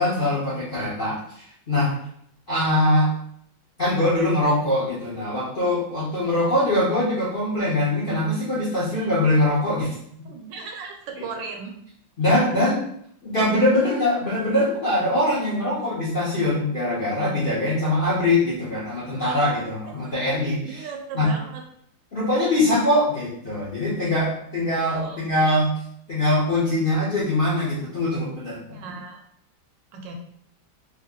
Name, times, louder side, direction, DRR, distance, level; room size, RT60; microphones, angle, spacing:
voice 1, 0.0-1.9 2.5-3.1 3.8-10.0 12.2-12.8 13.2-20.9 21.1-21.3 22.1-25.7 26.1-28.8, left 1 dB, 55° left, -9 dB, 0.6 m, -22 dB
voice 2, 6.1-6.5 9.0-9.2 10.2-11.8 19.9-20.0 20.6-21.6 24.9-25.3 28.7-29.2 29.9-30.1, right 4 dB, 80° right, 2 dB, 1.3 m, -37 dB
3.3 x 2.0 x 3.7 m, 0.69 s
omnidirectional pair, 2.0 m